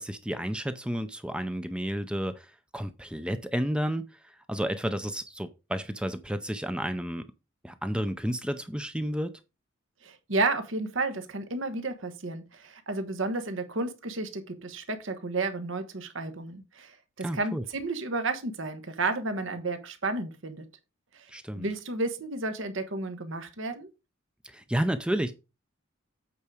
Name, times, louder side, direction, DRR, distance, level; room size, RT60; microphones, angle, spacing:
voice 1, 0.0-7.3 7.6-9.3 17.2-17.6 21.3-21.7 24.4-25.3, equal, 5° right, 0.5 m, -31 dB
voice 2, 10.0-20.6 21.1-21.3 21.5-23.9, right 3 dB, 65° right, 1.3 m, -32 dB
8.5 x 4.8 x 4.9 m
head